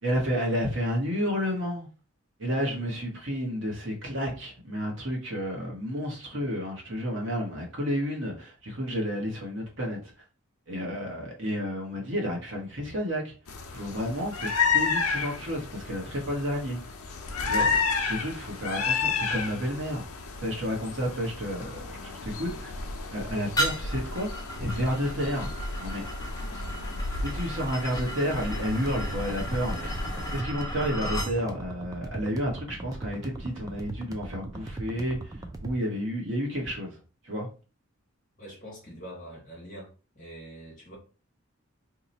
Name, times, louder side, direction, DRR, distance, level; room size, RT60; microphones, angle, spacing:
voice 1, 0.0-1.9 2.4-10.1 10.7-13.3 13.7-16.8 17.4-17.7 18.1-20.0 20.4-22.8 23.1-24.3 24.6-25.5 25.8-26.0 27.2-37.0 37.2-37.5, equal, 55° right, 1.2 m, -31 dB
sound 1, 13.5-30.4, left 5 dB, 90° left, 0.6 m, -32 dB
sound 2, 23.6-31.3, right 1 dB, 15° left, 0.7 m, -35 dB
sound 3, 28.7-35.8, right 2 dB, 15° right, 0.4 m, -39 dB
voice 2, 38.4-41.0, right 1 dB, 35° left, 1.0 m, -44 dB
2.8 x 2.3 x 4.0 m
head